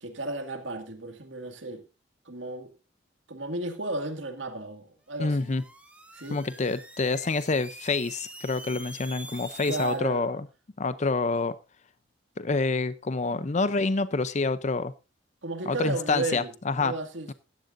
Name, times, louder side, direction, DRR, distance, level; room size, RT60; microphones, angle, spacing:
voice 1, 0.0-1.8 2.3-2.7 3.3-5.5 6.1-6.4 9.6-10.3 13.3-13.4 15.4-16.5 16.8-17.3, right 2 dB, 80° right, 2.0 m, -34 dB
sound 1, 5.1-10.0, right 2 dB, 5° right, 1.6 m, -45 dB
voice 2, 5.2-5.6 6.3-10.5 10.8-11.6 12.4-14.9 15.7-16.9 17.3-17.4, left 3 dB, 40° left, 0.6 m, -27 dB
16.0 x 11.5 x 2.6 m
head